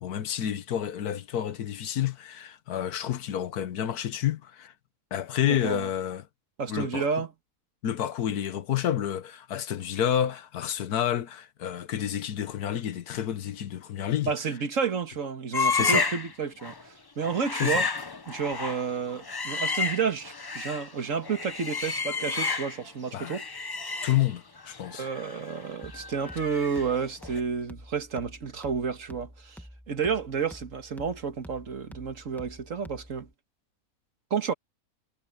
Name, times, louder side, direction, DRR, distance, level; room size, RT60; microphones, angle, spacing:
voice 1, 0.0-4.7 5.1-6.3 6.7-7.0 7.8-14.3 15.6-16.1 17.6-17.9 23.1-23.4 24.0-25.0, left 10 dB, 90° left, 1.5 m, -29 dB
voice 2, 5.5-5.9 6.6-7.3 14.3-17.9 18.3-23.4 24.9-33.3 34.3-34.5, right 6 dB, 60° right, 1.9 m, -31 dB
sound 1, 15.5-16.3 16.6-16.8 17.2-20.9 21.2-22.9 23.2-27.0 27.2-27.4, left 4 dB, 35° left, 0.4 m, -31 dB
sound 2, 25.8-33.3, equal, ahead, 1.2 m, -48 dB
omnidirectional pair, 1.6 m